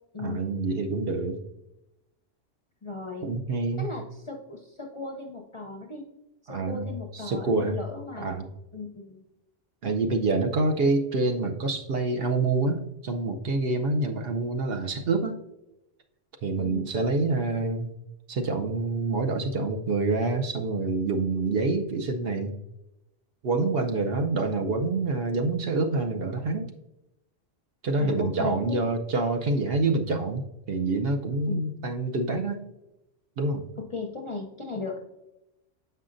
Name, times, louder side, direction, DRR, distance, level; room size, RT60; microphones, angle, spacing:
voice 1, 0.2-1.4 3.2-3.9 6.5-7.8 8.2-8.5 9.8-15.4 16.4-17.9 18.3-22.5 23.4-26.7 27.8-30.4 30.7-32.6 33.4-33.6, right 3 dB, 60° right, 4 dB, 0.8 m, -27 dB
voice 2, 2.8-3.3 3.8-6.0 6.4-9.2 16.6-16.9 28.0-28.8 31.5-31.7 33.9-35.0, left 3 dB, 35° left, 1 dB, 0.5 m, -37 dB
7.8 x 5.6 x 2.5 m, 0.91 s
omnidirectional pair, 1.2 m